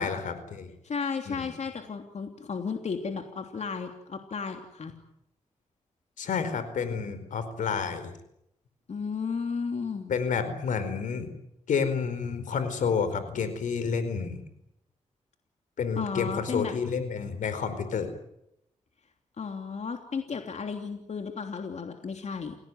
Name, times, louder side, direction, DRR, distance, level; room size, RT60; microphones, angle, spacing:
voice 1, 0.0-0.7 1.3-1.4 6.2-8.1 10.1-11.3 11.7-14.4 15.8-18.1, left 6 dB, 85° left, 11 dB, 4.7 m, -29 dB
voice 2, 0.8-4.9 8.9-10.1 15.9-16.8 19.4-22.6, left 5 dB, 60° left, 5 dB, 3.2 m, -34 dB
29.0 x 18.0 x 9.4 m, 0.80 s
cardioid pair, 60°, 13 cm